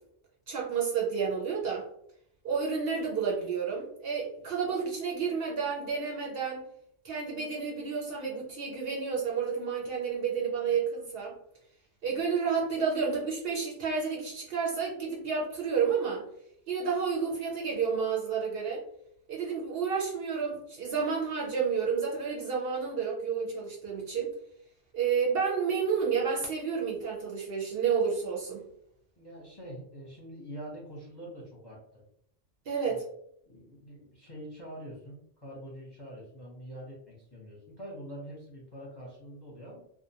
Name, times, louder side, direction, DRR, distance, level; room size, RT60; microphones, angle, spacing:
voice 1, 0.5-1.9 2.4-6.6 7.0-11.3 12.0-16.2 16.7-18.8 19.3-24.3 24.9-28.6 32.7-33.0, right 6 dB, 60° right, -3 dB, 0.7 m, -30 dB
voice 2, 29.2-32.0 32.9-33.0 33.5-39.8, equal, 25° left, -4 dB, 0.7 m, -45 dB
2.4 x 2.1 x 2.7 m, 0.70 s
omnidirectional pair, 1.2 m